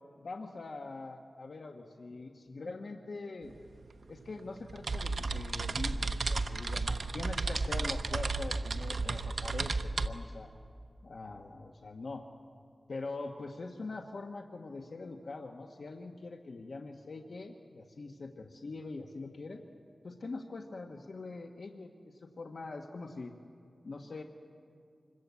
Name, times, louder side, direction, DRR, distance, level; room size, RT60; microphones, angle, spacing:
voice 1, 0.2-3.5 4.1-10.5 11.0-12.2 12.9-19.6 20.0-23.3 23.8-24.2, left 3 dB, 70° left, 2 dB, 1.3 m, -43 dB
sound 1, 3.4-3.5 3.8-10.1, right 3 dB, 65° right, 0.9 m, -33 dB
26.0 x 22.0 x 8.4 m, 2.4 s
wide cardioid pair, 85°, 0 cm